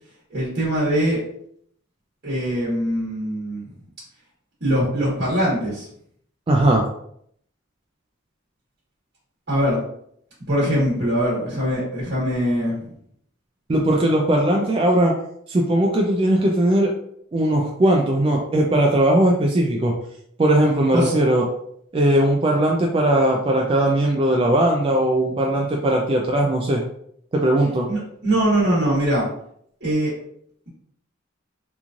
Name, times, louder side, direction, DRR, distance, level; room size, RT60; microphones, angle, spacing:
voice 1, 0.3-1.2 2.2-3.6 4.6-5.9 9.5-9.8 10.5-12.9 20.9-21.1 27.9-29.3 29.8-30.1, equal, 55° right, -7 dB, 1.2 m, -22 dB
voice 2, 6.5-6.8 13.7-15.1 15.5-16.9 17.3-19.9 20.4-21.5 21.9-26.8 27.3-27.9, right 1 dB, 30° right, 0 dB, 0.3 m, -19 dB
3.0 x 2.5 x 2.4 m, 0.67 s
head